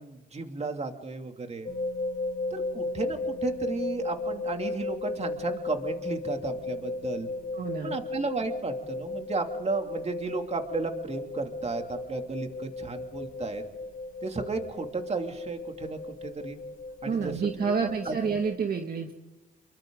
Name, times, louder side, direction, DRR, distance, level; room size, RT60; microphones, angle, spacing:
voice 1, 0.0-1.7 2.5-7.3 7.8-13.6 14.2-16.6 17.0-17.3 17.8-18.2, right 3 dB, 35° right, 5 dB, 2.8 m, -34 dB
sound 1, 1.6-18.5, left 2 dB, 45° left, 3.6 m, -35 dB
voice 2, 7.5-8.0 17.0-19.1, right 5 dB, 50° right, 3 dB, 2.1 m, -29 dB
28.5 x 23.0 x 4.0 m, 1.1 s
cardioid pair, 90°, 20 cm